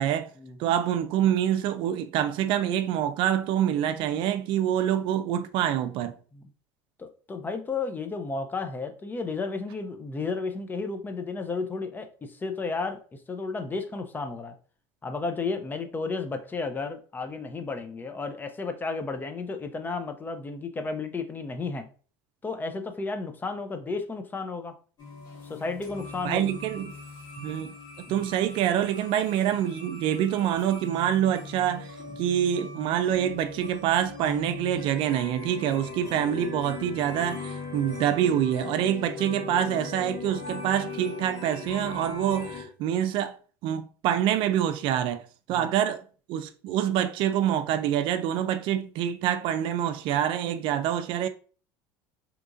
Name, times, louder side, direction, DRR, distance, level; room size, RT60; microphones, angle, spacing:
voice 1, 0.6-6.1 26.2-26.9 27.4-27.7 28.1-31.9 32.2-43.4 43.6-45.2 45.5-46.0 46.3-51.3, right 10 dB, 60° right, 0.4 m, -26 dB
voice 2, 7.0-14.6 15.0-21.9 22.4-24.8 25.4-26.5 28.1-28.3 32.1-32.2 45.5-45.7, left 4 dB, 20° left, 0.5 m, -33 dB
sound 1, 25.0-42.6, left 4 dB, 45° left, 1.5 m, -39 dB
2.9 x 2.4 x 3.7 m
supercardioid pair, 105°, 10 cm